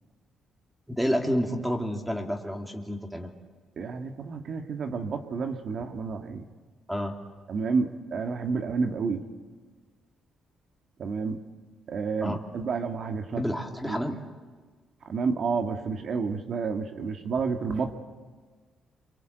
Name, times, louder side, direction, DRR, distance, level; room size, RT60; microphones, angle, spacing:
voice 1, 0.9-3.3 6.9-7.2 12.2-12.4 13.4-14.2, equal, ahead, 3 dB, 2.6 m, -29 dB
voice 2, 3.8-6.4 7.5-9.2 11.0-11.4 11.9-13.4 13.9-14.0 15.1-18.0, right 5 dB, 60° right, 5 dB, 2.1 m, -30 dB
28.0 x 24.0 x 8.1 m, 1.5 s
cardioid pair, 90°, 0 cm